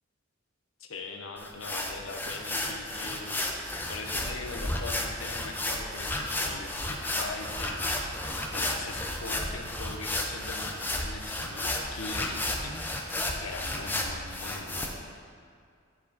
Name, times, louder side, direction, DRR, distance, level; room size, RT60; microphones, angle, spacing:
voice 1, 0.8-3.5 3.9-12.8 13.4-15.1, left 3 dB, 85° left, 3 dB, 0.8 m, -41 dB
sound 1, 1.4-14.9, left 1 dB, 10° left, 0.6 m, -33 dB
10.0 x 4.6 x 4.0 m, 2.3 s
head